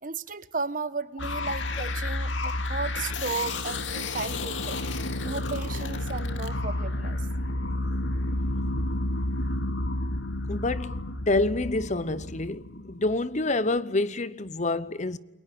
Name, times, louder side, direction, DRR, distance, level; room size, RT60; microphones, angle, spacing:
voice 1, 0.0-4.8 5.2-7.2, right 4 dB, 45° right, 1.2 m, -34 dB
sound 1, 1.2-13.5, left 2 dB, 70° left, 2.3 m, -31 dB
voice 2, 10.5-11.0 11.3-15.2, left 2 dB, 35° left, 0.9 m, -27 dB
29.5 x 22.5 x 8.6 m
head